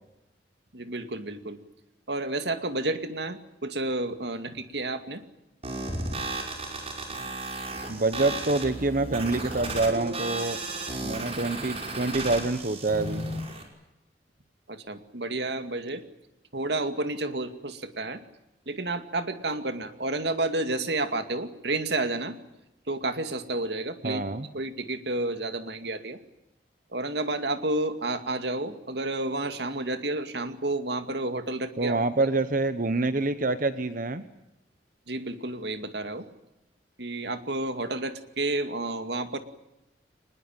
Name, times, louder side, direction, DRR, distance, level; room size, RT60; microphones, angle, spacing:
voice 1, 0.7-1.6 2.1-5.2 14.7-16.0 16.5-18.2 18.7-22.4 22.9-24.2 24.5-26.2 26.9-31.9 35.1-36.3 37.0-39.4, right 2 dB, 70° right, 9 dB, 2.4 m, -30 dB
sound 1, 5.6-13.6, right 2 dB, 35° right, 5.6 m, -34 dB
voice 2, 7.9-10.6 11.0-13.2 24.0-24.5 31.8-34.2, right 2 dB, 50° right, 12 dB, 1.1 m, -26 dB
24.5 x 21.0 x 9.1 m, 0.93 s
head